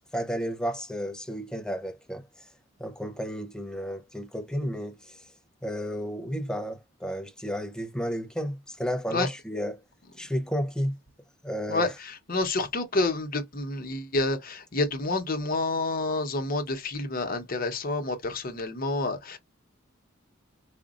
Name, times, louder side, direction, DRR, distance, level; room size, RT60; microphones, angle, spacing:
voice 1, 0.1-2.2 2.8-5.2 5.6-9.8 10.2-11.0 11.4-11.9, equal, 5° left, 0.6 m, -32 dB
voice 2, 11.7-19.4, left 2 dB, 45° left, 1.0 m, -29 dB
5.0 x 2.4 x 2.4 m
head